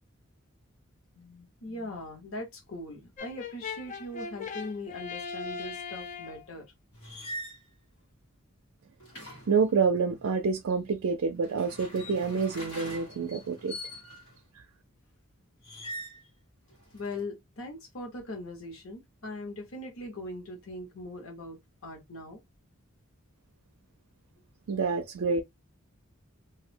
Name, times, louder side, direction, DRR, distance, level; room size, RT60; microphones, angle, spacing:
voice 1, 1.1-6.7 16.9-22.4, left 1 dB, 65° left, 1.2 m, -40 dB
Brass instrument, 3.2-6.5, left 5 dB, 35° left, 0.4 m, -39 dB
sound 1, 6.9-7.6 9.0-10.3 11.3-14.4 15.6-16.3 16.7-17.2, equal, 90° left, 1.5 m, -43 dB
voice 2, 9.5-13.8 24.7-25.4, right 5 dB, 75° right, 0.4 m, -27 dB
2.6 x 2.1 x 3.3 m
head